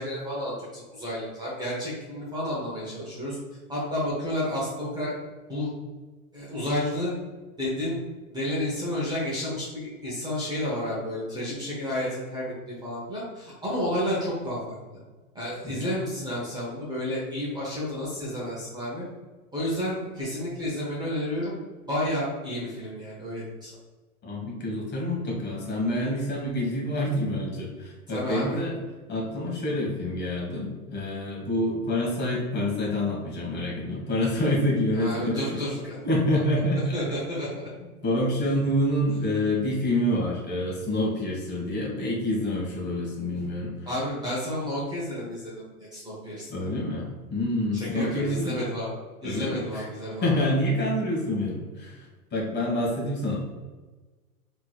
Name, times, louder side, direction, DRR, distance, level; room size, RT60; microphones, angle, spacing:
voice 1, 0.0-3.4 3.7-5.1 5.5-5.7 6.3-7.1 7.6-8.0 8.3-14.8 15.3-19.0 19.5-21.5 21.9-23.7 28.1-28.6 34.9-36.0 36.9-37.7 43.3-43.5 43.8-46.6 47.7-48.9 49.2-50.3, left 1 dB, 10° right, -8 dB, 0.9 m, -31 dB
voice 2, 15.6-15.9 24.2-28.8 29.1-35.6 36.0-37.2 38.0-43.7 46.5-48.6 49.2-49.9 50.2-53.4, left 1 dB, 25° left, -3 dB, 1.3 m, -27 dB
3.5 x 3.1 x 2.3 m, 1.3 s
hypercardioid pair, 110°, 44 cm